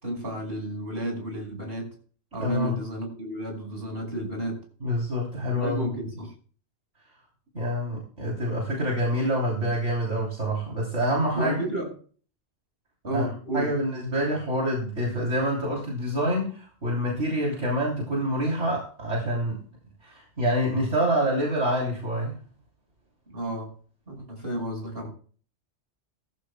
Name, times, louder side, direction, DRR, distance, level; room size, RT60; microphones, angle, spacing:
voice 1, 0.0-1.9 2.3-4.6 5.5-6.3 11.3-11.9 13.0-13.7 23.3-23.7 24.1-25.1, right 1 dB, 55° right, 1 dB, 5.8 m, -32 dB
voice 2, 2.4-2.8 4.8-5.9 7.5-11.6 13.1-13.2 13.5-19.6 20.0-22.4, equal, 80° right, -3 dB, 3.7 m, -27 dB
19.0 x 14.0 x 2.2 m, 0.42 s
omnidirectional pair, 1.2 m